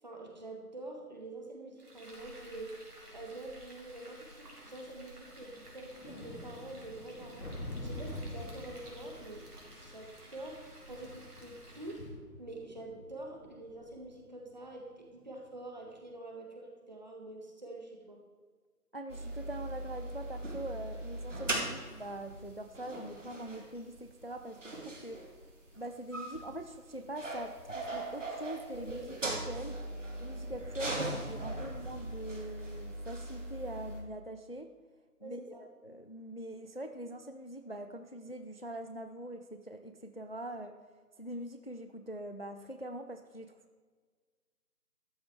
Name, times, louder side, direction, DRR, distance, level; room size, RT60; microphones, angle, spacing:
voice 1, 0.0-2.8 3.1-7.5 7.8-10.6 10.9-12.0 12.4-18.2 35.2-35.6, right 2 dB, 30° right, 1 dB, 1.7 m, -46 dB
Frying (food), 1.8-12.1, right 1 dB, 75° right, 3.6 m, -53 dB
sound 1, 1.9-2.0 3.1-3.2 4.3-4.4 4.7-4.8 5.4-15.5 15.8-16.0, left 1 dB, 65° left, 3.3 m, -47 dB
voice 2, 18.9-25.3 25.8-29.8 30.2-34.7 35.2-40.8 41.2-43.6, right 1 dB, 40° left, 8 dB, 0.5 m, -43 dB
sound 2, 19.1-34.0, right 2 dB, 50° right, 2.3 m, -40 dB
13.0 x 9.4 x 4.7 m, 1.5 s
figure-of-eight pair, 165°, 47 cm